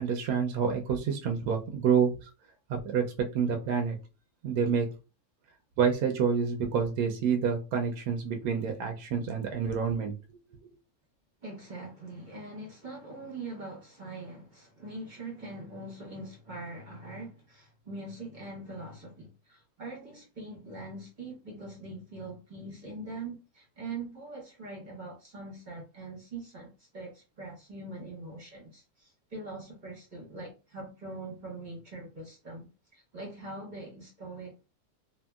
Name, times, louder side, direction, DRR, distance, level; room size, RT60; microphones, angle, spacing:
voice 1, 0.0-2.1 2.7-3.0 3.3-4.0 4.4-4.9 5.8-10.1, right 6 dB, 75° right, 1.0 m, -28 dB
voice 2, 11.4-32.7 32.9-34.7, right 2 dB, 35° right, 0.9 m, -42 dB
2.7 x 2.7 x 2.3 m
omnidirectional pair, 1.6 m